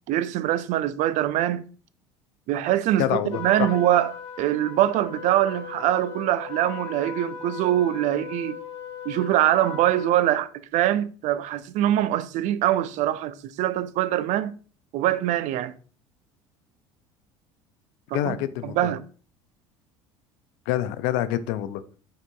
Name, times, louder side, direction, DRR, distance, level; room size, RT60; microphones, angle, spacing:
voice 1, 0.1-1.6 2.5-3.1 3.4-8.6 9.1-14.6 14.9-15.7 18.1-18.4 18.6-19.0, right 12 dB, 55° right, 0.4 m, -23 dB
voice 2, 3.0-3.7 18.1-18.8 20.7-21.8, left 12 dB, 65° left, 0.4 m, -26 dB
Trumpet, 3.3-10.2, left 7 dB, 85° left, 0.9 m, -38 dB
5.3 x 3.6 x 2.2 m
hypercardioid pair, 70°, 15 cm